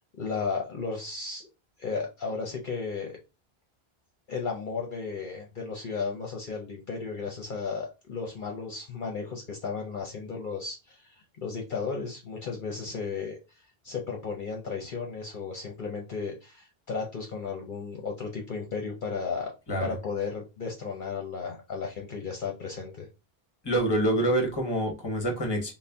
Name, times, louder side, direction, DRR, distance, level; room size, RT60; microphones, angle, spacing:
voice 1, 0.2-1.5 1.8-3.2 4.3-13.4 13.8-19.5 19.8-23.1, left 5 dB, 55° left, 1 dB, 0.8 m, -34 dB
voice 2, 23.6-25.7, right 1 dB, 25° left, 3 dB, 1.0 m, -26 dB
4.1 x 2.1 x 3.4 m, 0.27 s
omnidirectional pair, 1.0 m